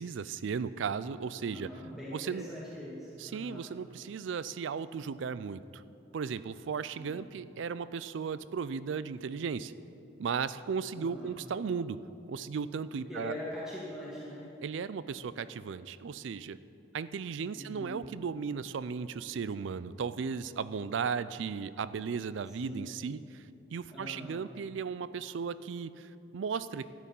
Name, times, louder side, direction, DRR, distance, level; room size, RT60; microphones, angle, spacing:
voice 1, 0.0-1.7 2.1-2.4 3.2-5.8 6.1-9.7 10.2-12.0 12.3-13.3 14.6-16.6 16.9-26.9, right 6 dB, 75° right, 16 dB, 0.4 m, -36 dB
voice 2, 1.5-3.7 7.0-7.2 11.0-11.4 13.1-14.5 17.5-18.1 22.5-22.9 23.9-24.4, left 1 dB, 5° right, -8 dB, 1.8 m, -42 dB
12.5 x 10.0 x 5.4 m, 2.8 s
head